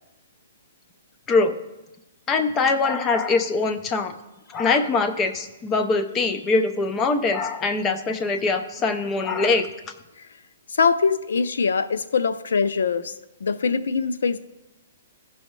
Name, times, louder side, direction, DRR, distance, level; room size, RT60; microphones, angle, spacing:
voice 1, 2.3-4.1 4.5-9.7, left 3 dB, 15° left, 8 dB, 0.5 m, -22 dB
voice 2, 10.7-13.1 13.4-14.4, left 5 dB, 85° left, 13 dB, 0.5 m, -23 dB
15.5 x 5.5 x 3.1 m, 1.0 s
hypercardioid pair, 165°, 0 cm